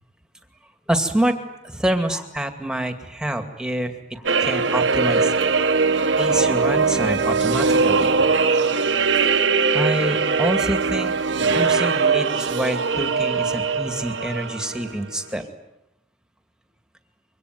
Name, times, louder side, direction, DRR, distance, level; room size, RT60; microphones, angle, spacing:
voice 1, 0.9-5.3 6.2-8.3 9.7-15.5, right 1 dB, 5° right, 6 dB, 2.3 m, -27 dB
sound 1, 4.3-15.0, right 4 dB, 85° right, 1.5 m, -21 dB
26.0 x 23.5 x 9.4 m, 0.87 s
head